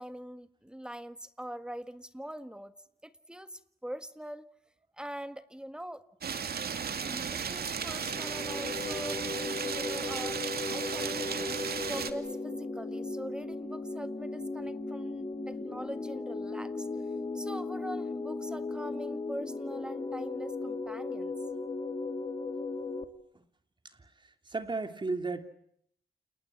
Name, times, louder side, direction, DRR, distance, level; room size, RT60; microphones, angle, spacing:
voice 1, 0.0-2.7 3.0-4.5 5.0-6.0 6.9-9.2 9.6-16.9 17.3-21.3, equal, 5° right, 10 dB, 1.7 m, -43 dB
sound 1, 6.2-12.1, right 6 dB, 70° right, 2.5 m, -35 dB
sound 2, 8.1-23.0, left 3 dB, 30° left, 3.1 m, -37 dB
voice 2, 23.8-25.5, right 3 dB, 30° right, 7 dB, 3.1 m, -36 dB
29.5 x 29.5 x 6.0 m, 0.70 s
wide cardioid pair, 125°, 17 cm